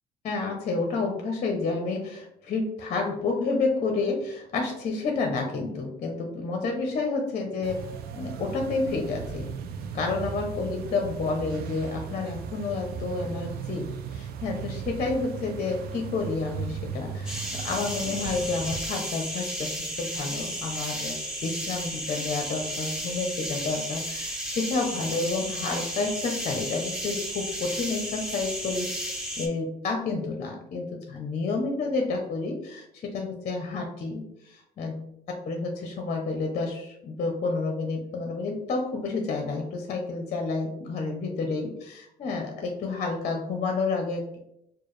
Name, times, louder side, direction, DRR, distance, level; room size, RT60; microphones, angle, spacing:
voice 1, 0.2-7.8 8.2-9.5 9.9-13.9 14.1-21.2 21.4-44.4, left 3 dB, 45° left, 3 dB, 0.6 m, -30 dB
sound 1, 7.6-18.8, right 7 dB, 65° right, 0.4 m, -37 dB
sound 2, 17.3-29.5, equal, 5° right, 0.9 m, -33 dB
4.5 x 2.3 x 3.1 m, 0.79 s
cardioid pair, 110°, 17 cm